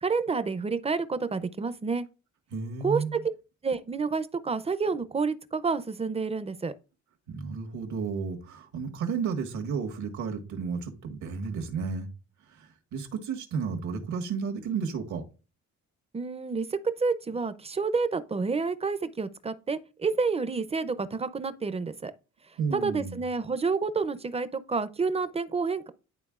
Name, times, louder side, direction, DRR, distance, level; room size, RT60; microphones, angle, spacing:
voice 1, 0.0-2.1 2.8-3.2 3.6-6.7 16.1-22.1 22.7-25.9, right 4 dB, 20° right, 0.6 m, -29 dB
voice 2, 2.5-3.2 7.3-12.1 12.5-15.2 22.6-23.2, right 5 dB, 75° right, 1.6 m, -32 dB
11.0 x 3.7 x 2.4 m
cardioid pair, 90°, 30 cm